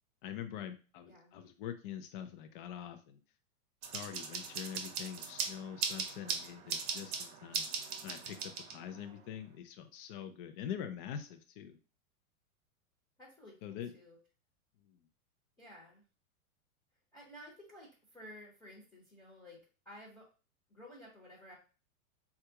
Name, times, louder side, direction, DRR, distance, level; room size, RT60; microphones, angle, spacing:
voice 1, 0.2-3.2 3.9-7.7 8.0-11.8 13.6-13.9 14.9-15.0, left 9 dB, 40° left, 8 dB, 0.4 m, -44 dB
sound 1, 3.8-9.1, right 6 dB, 45° right, 0.8 m, -39 dB
voice 2, 8.9-9.3 13.2-14.2 15.6-16.0 17.1-20.2 20.7-21.5, equal, 10° left, -6 dB, 0.9 m, -54 dB
3.4 x 2.4 x 2.8 m, 0.35 s
hypercardioid pair, 135°, 43 cm